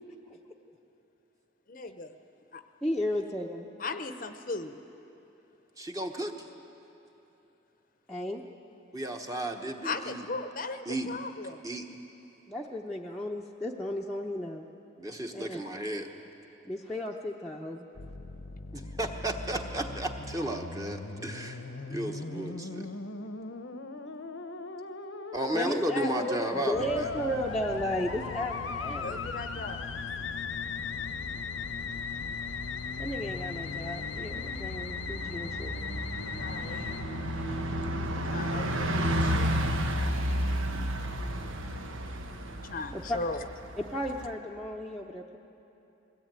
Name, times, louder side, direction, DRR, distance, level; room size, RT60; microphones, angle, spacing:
voice 1, 1.7-2.1 2.5-2.6 3.8-4.8 9.8-11.6 29.0-29.9 36.4-36.9 38.3-39.6 41.5-41.6 42.6-43.5, left 3 dB, 45° left, 9 dB, 0.7 m, -37 dB
voice 2, 2.8-3.7 8.1-8.4 12.5-14.7 15.3-15.6 16.6-17.9 25.5-29.2 33.0-35.8 42.9-43.2 43.8-45.4, left 1 dB, ahead, -4 dB, 0.8 m, -34 dB
voice 3, 5.8-6.3 8.9-10.2 10.9-11.2 11.6-11.8 15.0-16.1 19.0-21.6 21.9-22.9 25.3-27.1, right 1 dB, 15° right, 3 dB, 1.2 m, -33 dB
Musical instrument, 17.9-37.0, left 4 dB, 80° left, 0.9 m, -39 dB
sound 1, 26.7-39.2, left 5 dB, 65° left, 0.4 m, -43 dB
Bus, 27.3-44.3, equal, 90° right, 1.3 m, -34 dB
21.5 x 17.0 x 9.0 m, 2.9 s
head